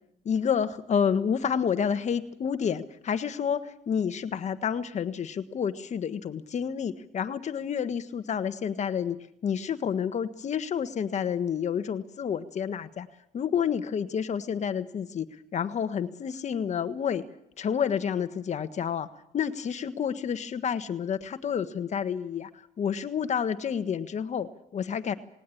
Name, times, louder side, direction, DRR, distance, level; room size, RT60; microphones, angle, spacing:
voice 1, 0.2-9.2 9.4-13.1 13.3-15.3 15.5-17.2 17.6-19.1 19.3-22.5 22.8-25.1, left 7 dB, 45° left, 10 dB, 1.5 m, -29 dB
19.0 x 18.5 x 8.6 m, 0.76 s
cardioid pair, 110°, 17 cm